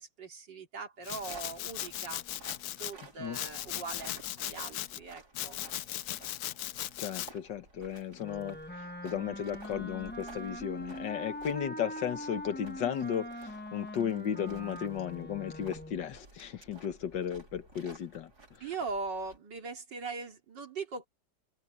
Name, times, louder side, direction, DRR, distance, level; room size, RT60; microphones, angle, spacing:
voice 1, 0.0-2.2 2.6-5.6 10.2-10.5 18.6-21.1, right 4 dB, 90° right, 3.4 m, -41 dB
Domestic sounds home sounds, 1.0-2.9 3.3-5.0 5.3-7.3, left 13 dB, 70° left, 1.1 m, -38 dB
sound 1, 1.1-19.4, right 3 dB, 65° right, 4.7 m, -55 dB
voice 2, 7.0-8.6 9.0-18.3, left 9 dB, 90° left, 1.9 m, -35 dB
Wind instrument woodwind instrument, 8.2-16.0, left 1 dB, 5° left, 1.0 m, -42 dB
open air
omnidirectional pair, 1.9 m